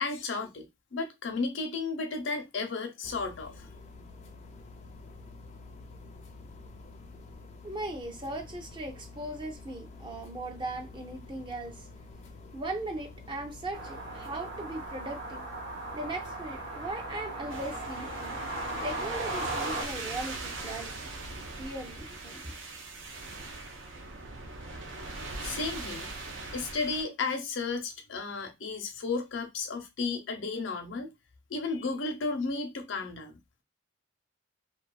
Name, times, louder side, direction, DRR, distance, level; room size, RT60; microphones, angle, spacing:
voice 1, 0.0-3.7 25.4-26.1 26.5-31.1 31.5-33.4, left 4 dB, 80° left, 0.6 m, -33 dB
sound 1, 3.0-18.9, left 3 dB, 35° left, 0.4 m, -48 dB
voice 2, 7.6-11.9 12.5-15.4 15.9-18.4 18.8-21.1 21.6-22.4, right 1 dB, 25° right, 0.4 m, -38 dB
sound 2, 13.7-19.8, right 2 dB, 65° right, 0.8 m, -37 dB
sound 3, 17.5-27.0, right 3 dB, 80° right, 0.5 m, -41 dB
2.5 x 2.3 x 2.2 m
head